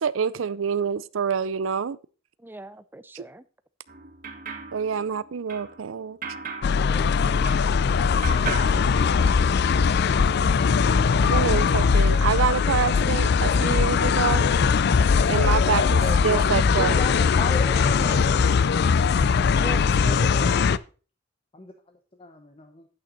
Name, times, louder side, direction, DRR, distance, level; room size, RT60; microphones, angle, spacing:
voice 1, 0.0-2.0 3.1-3.2 4.7-6.2 11.2-14.4 15.3-16.9 20.2-20.3, right 6 dB, 80° right, 0.5 m, -26 dB
voice 2, 2.4-3.4 6.9-7.5 17.7-18.3 19.5-20.7, right 2 dB, 10° right, 0.5 m, -40 dB
sound 1, 3.9-7.9 8.2-9.7, right 5 dB, 45° right, 1.4 m, -37 dB
sound 2, 6.6-20.8, left 5 dB, 55° left, 0.4 m, -20 dB
voice 3, 15.6-18.3 21.5-21.7 22.2-22.9, left 2 dB, 30° left, 0.9 m, -34 dB
8.9 x 8.6 x 3.9 m
head